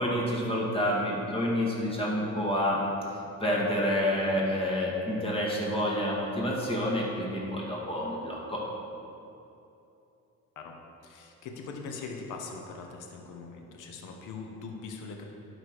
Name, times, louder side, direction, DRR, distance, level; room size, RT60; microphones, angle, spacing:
voice 1, 0.0-2.8 3.4-8.6, equal, 20° left, -4 dB, 1.9 m, -28 dB
voice 2, 10.6-15.2, left 4 dB, 85° left, 2 dB, 0.9 m, -41 dB
11.5 x 4.0 x 4.8 m, 2.8 s
cardioid pair, 90°, 30 cm